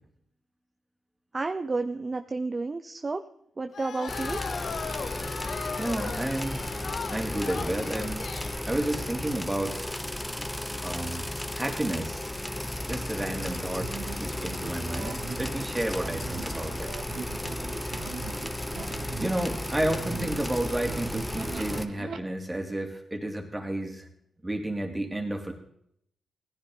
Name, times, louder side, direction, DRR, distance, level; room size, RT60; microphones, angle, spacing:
voice 1, 1.3-3.2 3.6-4.4, right 3 dB, 35° right, 8 dB, 0.7 m, -31 dB
sound 1, 3.7-8.6, left 6 dB, 65° left, 0.6 m, -37 dB
sound 2, 4.1-21.9, left 1 dB, 10° left, 1.1 m, -34 dB
voice 2, 5.8-6.6 7.1-8.2 8.6-9.8 10.8-11.2 11.5-12.3 12.9-13.9 14.2-16.9 19.2-24.1 24.4-25.5, right 1 dB, 15° right, 2 dB, 2.8 m, -31 dB
sound 3, 13.2-22.2, right 6 dB, 70° right, 1.1 m, -41 dB
17.0 x 10.5 x 3.9 m, 0.70 s
cardioid pair, 65°, 0 cm